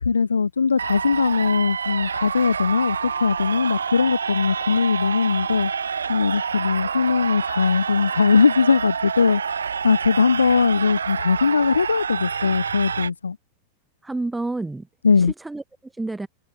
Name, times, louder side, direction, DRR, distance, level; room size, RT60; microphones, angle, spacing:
voice 1, 0.0-13.4 15.0-15.3, left 5 dB, 75° left, 0.4 m, -20 dB
sound 1, 0.8-13.1, right 6 dB, 70° right, 0.3 m, -28 dB
voice 2, 14.0-14.9 15.2-16.3, right 2 dB, 5° right, 1.1 m, -30 dB
figure-of-eight pair, 90°, 0 cm